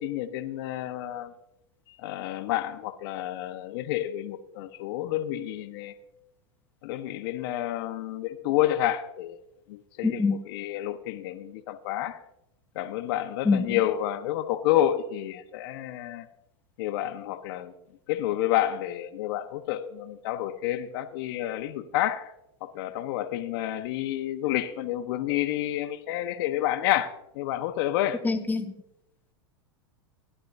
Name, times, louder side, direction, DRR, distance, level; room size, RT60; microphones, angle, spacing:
voice 1, 0.0-1.3 2.0-5.9 6.8-9.4 9.7-12.2 12.7-16.3 16.8-17.7 18.1-22.3 22.6-28.2, left 13 dB, 60° left, 9 dB, 1.2 m, -29 dB
voice 2, 10.0-10.4 13.4-13.8 28.2-28.6, left 4 dB, 15° left, 7 dB, 1.2 m, -24 dB
17.5 x 11.5 x 2.7 m, 0.82 s
hypercardioid pair, 105°, 14 cm